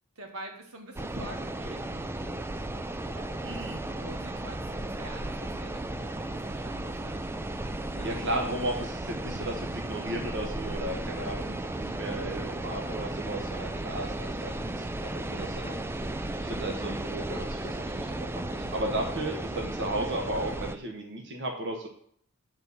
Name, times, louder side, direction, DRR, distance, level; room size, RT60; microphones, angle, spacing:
voice 1, 0.2-2.3 3.1-7.2 7.8-8.3, right 1 dB, 85° right, 3 dB, 1.8 m, -46 dB
sound 1, 1.0-20.8, right 1 dB, 10° right, 0.3 m, -35 dB
voice 2, 3.4-3.8 7.8-21.9, right 1 dB, 55° right, 1 dB, 1.2 m, -35 dB
8.9 x 4.2 x 7.0 m, 0.63 s
head